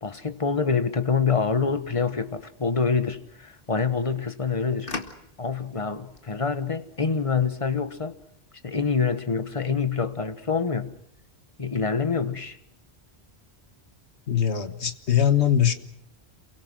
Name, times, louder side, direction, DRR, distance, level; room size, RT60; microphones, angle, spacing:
voice 1, 0.0-4.9 5.4-8.1 8.6-11.0 11.6-12.6, left 5 dB, 30° left, 1.3 m, -26 dB
sound 1, 1.3-7.8, left 3 dB, 55° left, 2.0 m, -45 dB
voice 2, 14.3-15.7, left 9 dB, 85° left, 1.7 m, -22 dB
28.0 x 23.0 x 6.2 m
omnidirectional pair, 1.1 m